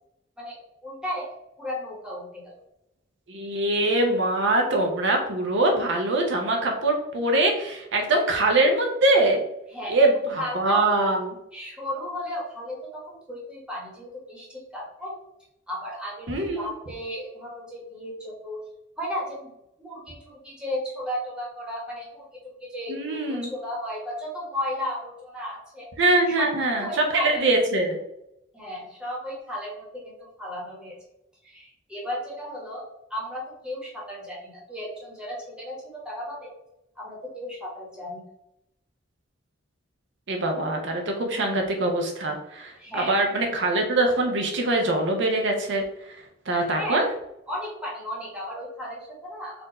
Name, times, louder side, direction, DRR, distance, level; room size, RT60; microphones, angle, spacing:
voice 1, 0.4-1.3 1.6-2.5 9.7-10.0 10.4-10.8 11.5-15.2 15.7-18.6 19.0-19.5 19.8-25.9 26.3-26.5 26.8-27.4 28.5-31.0 31.4-36.5 36.9-38.2 42.8-43.2 46.7-47.1 47.5-49.7, left 1 dB, 5° right, -4 dB, 1.4 m, -35 dB
voice 2, 3.3-9.4 9.9-11.3 16.3-16.6 22.9-23.5 26.0-28.0 40.3-45.8 46.5-47.1, right 2 dB, 65° right, 2 dB, 0.7 m, -23 dB
4.3 x 2.6 x 4.1 m, 0.84 s
head